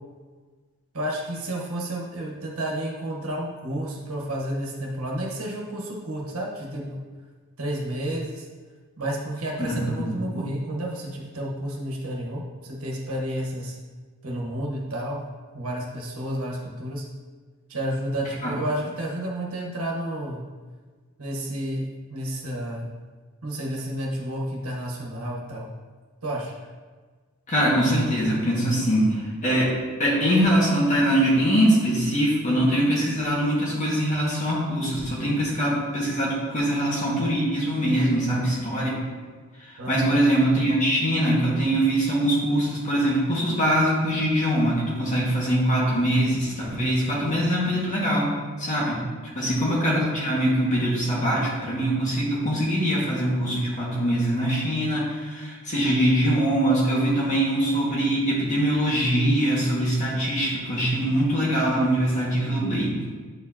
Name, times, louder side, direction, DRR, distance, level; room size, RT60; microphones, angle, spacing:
voice 1, 0.9-7.0 7.6-8.5 9.0-13.8 14.2-15.2 15.5-17.0 17.7-20.4 21.2-21.8 22.1-22.9 23.4-25.7 26.2-26.5 39.8-40.2 47.0-47.4 49.6-50.1, right 1 dB, 85° right, -2 dB, 1.3 m, -31 dB
voice 2, 9.6-10.4 18.4-18.5 27.5-29.7 30.0-39.0 39.9-48.3 48.6-49.0 49.4-63.0, right 1 dB, 35° left, -6 dB, 1.9 m, -23 dB
8.7 x 4.5 x 2.9 m, 1.4 s
head